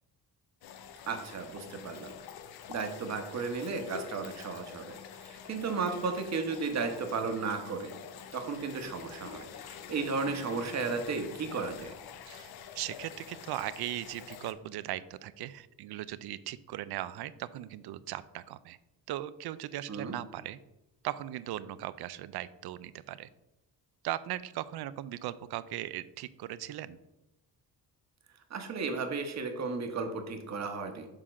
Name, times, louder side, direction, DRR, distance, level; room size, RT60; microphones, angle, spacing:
sound 1, 0.6-14.5, left 8 dB, 80° left, 0.7 m, -47 dB
voice 1, 1.1-2.1 2.7-7.9 8.3-11.9 19.9-20.2 28.5-31.1, right 4 dB, 45° right, 6 dB, 1.1 m, -34 dB
voice 2, 12.3-18.8 19.1-20.6 21.0-23.3 24.0-27.0, right 13 dB, 85° right, 16 dB, 0.5 m, -38 dB
6.7 x 3.7 x 6.1 m, 0.93 s
cardioid pair, 150°, 37 cm